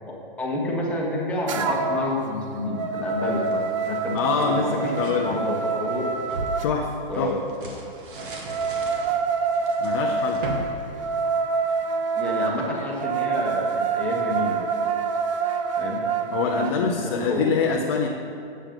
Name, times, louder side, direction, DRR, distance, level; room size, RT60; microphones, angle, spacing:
voice 1, 0.4-6.1 7.1-7.3 12.2-14.6 15.8-16.0 16.6-17.6, left 1 dB, 5° left, -4 dB, 1.1 m, -29 dB
sound 1, 1.5-2.1 2.5-6.7 8.2-16.8, right 5 dB, 35° right, 0.4 m, -26 dB
sound 2, 3.2-5.2 5.7-11.8, right 1 dB, 60° right, 1.7 m, -38 dB
voice 2, 4.1-5.4 6.6-6.9 7.2-7.3 9.8-10.4 16.3-18.1, left 5 dB, 25° left, 0 dB, 0.4 m, -25 dB
7.6 x 7.2 x 5.1 m, 2.6 s
hypercardioid pair, 145°, 30 cm